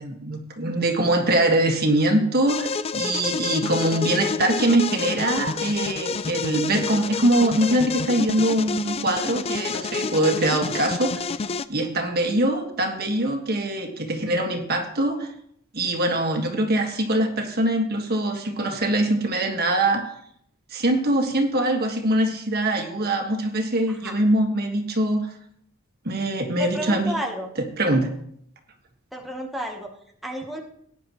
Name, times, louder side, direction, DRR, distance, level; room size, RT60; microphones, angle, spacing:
voice 1, 0.0-11.3 11.7-15.3 15.7-20.0 20.7-25.3 26.0-27.1 27.8-28.1, right 1 dB, 45° right, 4 dB, 1.6 m, -23 dB
sound 1, 2.5-11.7, left 5 dB, 25° left, 0.4 m, -29 dB
voice 2, 26.6-27.5 29.1-29.9 30.2-30.6, right 1 dB, ahead, 0 dB, 1.1 m, -31 dB
18.0 x 10.0 x 3.1 m, 0.68 s
head